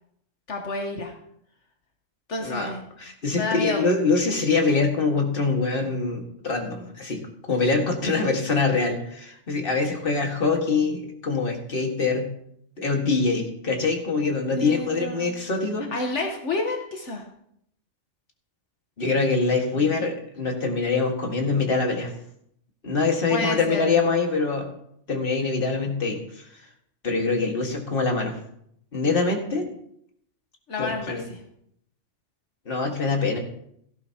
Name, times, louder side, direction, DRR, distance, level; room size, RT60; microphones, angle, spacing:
voice 1, 0.5-1.1 2.3-2.8 3.3-3.9 14.6-15.3 15.9-17.2 23.3-24.0 30.7-31.4, left 2 dB, 75° left, 2 dB, 1.5 m, -29 dB
voice 2, 3.0-7.2 7.5-12.3 12.8-15.9 19.0-22.1 22.8-24.7 25.1-26.5 27.0-28.4 28.9-29.7 30.8-31.3 32.7-33.4, left 4 dB, 50° left, 2 dB, 2.0 m, -24 dB
17.0 x 13.5 x 2.9 m, 0.73 s
omnidirectional pair, 1.2 m